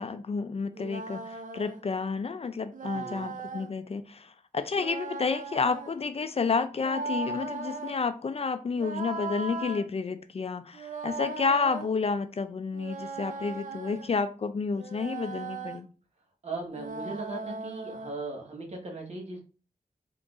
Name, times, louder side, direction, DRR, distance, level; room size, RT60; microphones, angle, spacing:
voice 1, 0.0-15.9, left 4 dB, 45° left, 0.4 m, -30 dB
sound 1, 0.7-1.8 2.7-3.7 4.7-6.0 6.7-8.0 8.8-9.8 10.7-11.9 12.7-14.1 14.7-15.8 16.7-18.1, right 3 dB, 65° right, 0.6 m, -38 dB
voice 2, 2.8-3.3 16.4-19.4, right 3 dB, 50° right, 1.3 m, -38 dB
3.8 x 3.7 x 2.4 m
wide cardioid pair, 95°, 14 cm